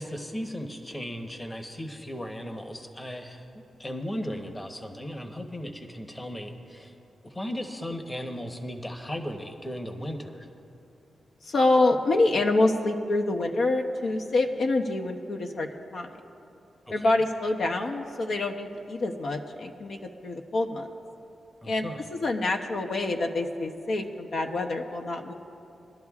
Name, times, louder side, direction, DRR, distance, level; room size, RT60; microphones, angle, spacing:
voice 1, 0.0-6.9 7.2-10.5 16.9-17.1 21.6-22.0, equal, 15° left, 4 dB, 0.9 m, -36 dB
voice 2, 11.4-16.2 16.9-20.9 21.7-25.3, left 2 dB, 65° left, 2 dB, 0.7 m, -26 dB
23.0 x 11.5 x 2.4 m, 2.7 s
wide cardioid pair, 105°, 0 cm